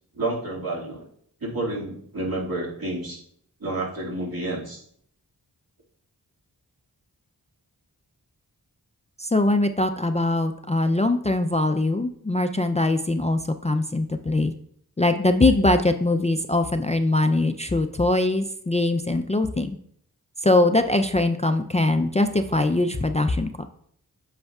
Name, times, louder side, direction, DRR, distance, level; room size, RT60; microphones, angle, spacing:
voice 1, 0.1-1.0 1.4-3.2 3.6-4.8, right 2 dB, 65° right, -4 dB, 2.1 m, -29 dB
voice 2, 9.2-14.5 15.0-19.8 20.4-23.7, left 2 dB, 20° left, 7 dB, 0.4 m, -22 dB
7.9 x 6.6 x 2.3 m, 0.66 s
wide cardioid pair, 60°, 38 cm